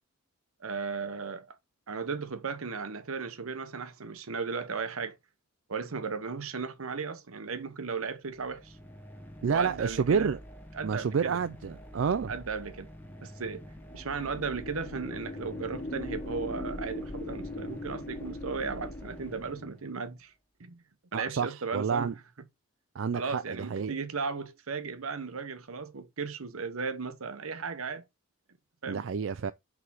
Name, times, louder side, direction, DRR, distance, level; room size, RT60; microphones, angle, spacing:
voice 1, 0.6-1.6 1.9-5.2 5.7-8.8 9.5-10.3 10.7-11.4 12.3-12.9 13.2-13.7 13.9-20.3 20.6-20.8 21.1-22.1 23.1-28.0 28.8-29.1, right 5 dB, 85° right, 0.9 m, -36 dB
sound 1, 8.3-20.1, equal, 10° left, 1.0 m, -48 dB
voice 2, 9.4-10.4 10.8-12.3 21.1-22.1 23.0-23.9 28.9-29.5, right 6 dB, 65° right, 0.4 m, -29 dB
sound 2, 13.6-19.7, left 1 dB, 30° left, 1.4 m, -40 dB
4.8 x 4.8 x 5.5 m
head